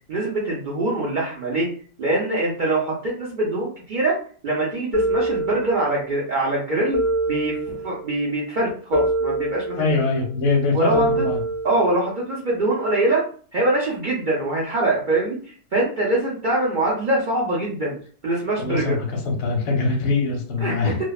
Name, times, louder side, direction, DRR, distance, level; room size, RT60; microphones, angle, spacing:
voice 1, 0.1-1.7 2.0-7.0 7.3-9.8 10.7-11.1 11.6-18.0 18.2-19.0 20.6-20.9, right 2 dB, 85° right, -4 dB, 0.4 m, -23 dB
sound 1, 4.9-6.1 6.9-8.1 8.9-10.1 10.9-12.1, right 2 dB, 15° left, 0.6 m, -25 dB
voice 2, 9.8-11.4 18.6-21.0, left 3 dB, 60° left, 1 dB, 0.9 m, -23 dB
2.5 x 2.1 x 2.3 m, 0.44 s
omnidirectional pair, 1.7 m